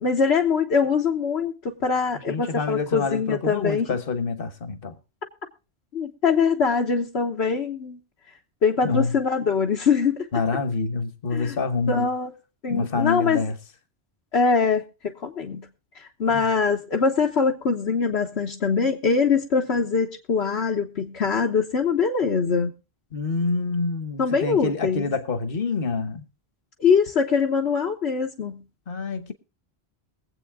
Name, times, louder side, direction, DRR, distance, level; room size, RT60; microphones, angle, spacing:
voice 1, 0.0-4.0 5.9-8.0 8.6-10.2 11.3-11.5 11.9-12.3 12.6-13.4 14.3-15.7 16.0-22.7 24.2-25.1 26.8-28.6, left 5 dB, 75° left, 1.4 m, -23 dB
voice 2, 2.3-5.0 8.8-9.2 10.3-12.1 12.7-13.6 16.3-16.5 23.1-26.2 28.9-29.3, left 4 dB, 60° left, 1.4 m, -27 dB
22.5 x 8.2 x 3.6 m
omnidirectional pair, 1.1 m